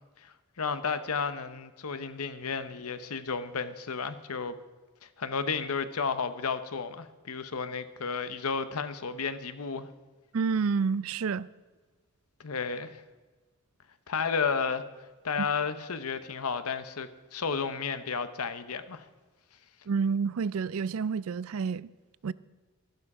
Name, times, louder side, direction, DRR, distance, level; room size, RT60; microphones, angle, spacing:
voice 1, 0.2-4.6 5.0-9.9 12.4-13.0 14.1-14.8 15.2-19.0, left 5 dB, 90° left, 0.8 m, -32 dB
voice 2, 10.3-11.5 15.4-15.5 19.9-21.9 22.2-22.3, right 5 dB, 70° right, 0.4 m, -29 dB
12.5 x 12.0 x 4.9 m
head